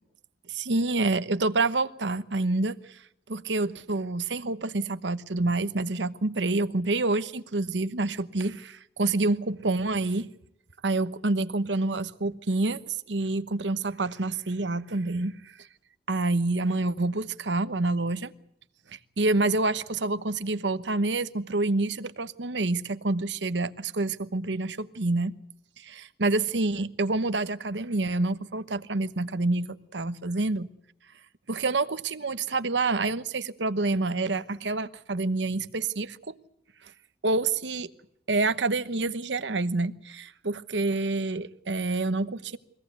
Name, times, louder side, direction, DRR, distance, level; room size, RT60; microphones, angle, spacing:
voice 1, 0.5-3.0 3.3-10.3 10.8-15.7 16.1-18.3 18.9-25.3 25.8-30.7 31.5-36.3 36.8-36.9 37.2-37.9 38.3-42.6, right 2 dB, 85° right, 1.1 m, -27 dB
23.0 x 17.5 x 8.2 m
head